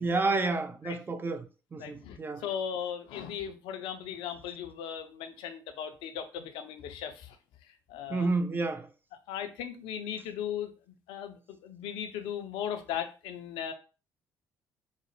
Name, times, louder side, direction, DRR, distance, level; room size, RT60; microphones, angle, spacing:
voice 1, 0.0-2.4 8.1-8.9, right 3 dB, 20° right, 0.4 m, -30 dB
voice 2, 1.8-7.4 7.7-8.3 9.3-10.7 11.1-13.7, left 9 dB, 60° left, 0.5 m, -37 dB
3.9 x 2.0 x 3.1 m
figure-of-eight pair, 50°, 10 cm